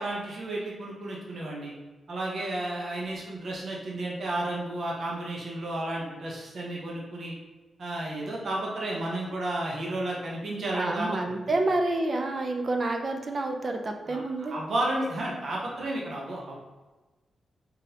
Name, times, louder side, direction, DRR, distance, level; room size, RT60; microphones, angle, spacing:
voice 1, 0.0-1.7 2.1-7.3 7.8-11.2 14.1-16.5, right 1 dB, 60° right, -3 dB, 0.9 m, -32 dB
voice 2, 10.7-14.6, right 2 dB, 45° right, 3 dB, 0.5 m, -28 dB
3.8 x 3.7 x 2.8 m, 1.2 s
cardioid pair, 100°, 0 cm